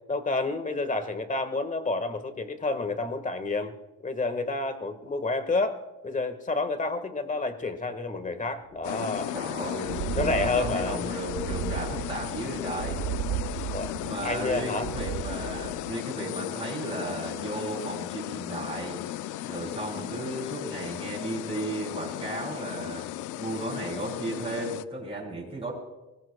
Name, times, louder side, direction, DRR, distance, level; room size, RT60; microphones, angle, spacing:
voice 1, 0.1-3.7 4.0-9.3 9.6-9.7 10.1-11.1 13.7-13.9 14.2-14.9, left 3 dB, 25° left, 9 dB, 1.5 m, -29 dB
sound 1, 8.8-24.8, left 14 dB, 85° left, 0.5 m, -35 dB
sound 2, 8.9-9.0 9.2-9.3 9.7-15.9, right 13 dB, 80° right, 0.5 m, -35 dB
voice 2, 9.3-13.0 14.0-19.0 19.5-23.0 23.4-25.7, right 2 dB, 20° right, -3 dB, 6.3 m, -35 dB
23.0 x 20.0 x 2.3 m, 1.0 s
cardioid pair, 90°, 30 cm